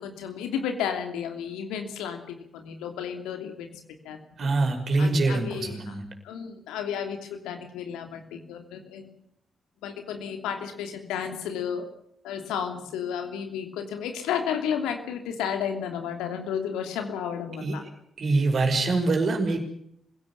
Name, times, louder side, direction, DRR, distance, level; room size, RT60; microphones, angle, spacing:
voice 1, 0.0-4.5 5.0-5.9 6.2-9.1 9.8-11.9 12.2-17.8, left 8 dB, 75° left, 5 dB, 2.9 m, -32 dB
voice 2, 4.4-6.0 17.6-17.9 18.2-19.6, right 3 dB, 55° right, 4 dB, 5.7 m, -24 dB
26.0 x 17.0 x 7.2 m, 0.71 s
hypercardioid pair, 40°, 0 cm